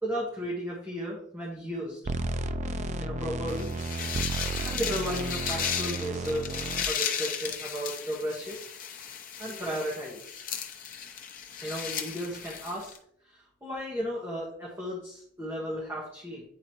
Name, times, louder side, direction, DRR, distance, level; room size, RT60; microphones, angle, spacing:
voice 1, 0.0-2.0 3.0-3.7 4.3-8.6 9.4-10.4 11.6-12.9 13.2-16.4, equal, 15° right, -5 dB, 1.3 m, -35 dB
sound 1, 2.1-6.8, right 3 dB, 40° right, 0.3 m, -33 dB
sound 2, 3.5-13.0, left 8 dB, 45° left, 0.8 m, -35 dB
9.5 x 3.9 x 3.0 m, 0.66 s
head